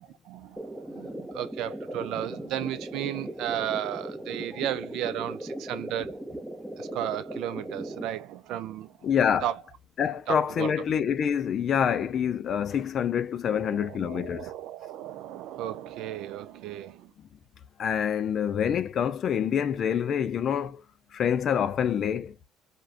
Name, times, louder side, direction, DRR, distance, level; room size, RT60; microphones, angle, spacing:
voice 1, 0.2-6.1 6.8-9.0 9.4-9.6 10.3-10.7 13.5-17.1, right 11 dB, 70° right, 0.4 m, -34 dB
sound 1, 0.6-8.1, right 1 dB, 10° right, 0.7 m, -38 dB
voice 2, 9.0-9.5 10.0-14.5 17.8-20.8 21.1-22.3, left 8 dB, 50° left, 0.4 m, -26 dB
2.4 x 2.2 x 2.4 m
supercardioid pair, 90°, 0 cm